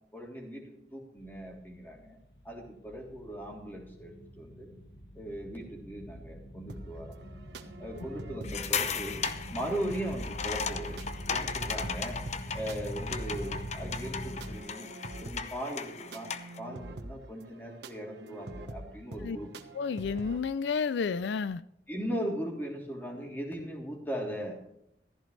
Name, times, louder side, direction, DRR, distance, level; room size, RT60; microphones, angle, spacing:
voice 1, 0.1-2.2 2.4-4.7 5.1-7.2 7.8-9.2 9.5-11.0 11.3-12.2 12.5-14.9 15.2-19.5 21.9-24.6, equal, 10° left, 3.3 m, -38 dB
sound 1, 1.2-14.6, equal, 60° left, 1.7 m, -43 dB
sound 2, 6.7-20.4, right 1 dB, 75° right, 1.3 m, -46 dB
sound 3, 8.4-16.6, left 6 dB, 40° left, 0.8 m, -36 dB
voice 2, 19.7-21.6, left 5 dB, 80° left, 0.4 m, -31 dB
15.0 x 14.0 x 3.3 m
head